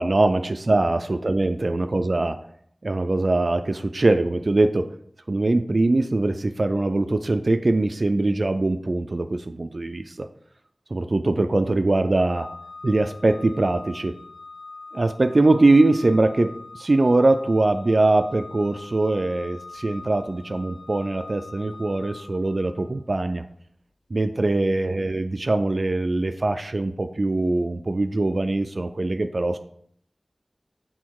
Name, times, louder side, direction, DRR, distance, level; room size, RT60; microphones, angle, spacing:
voice 1, 0.0-2.4 2.8-4.9 5.3-10.3 10.9-12.5 12.8-14.1 14.9-23.4 24.1-29.6, right 2 dB, 60° right, 8 dB, 0.3 m, -22 dB
Organ, 12.3-23.0, left 3 dB, 85° left, 0.4 m, -43 dB
6.3 x 3.8 x 4.6 m, 0.66 s
wide cardioid pair, 50°, 0 cm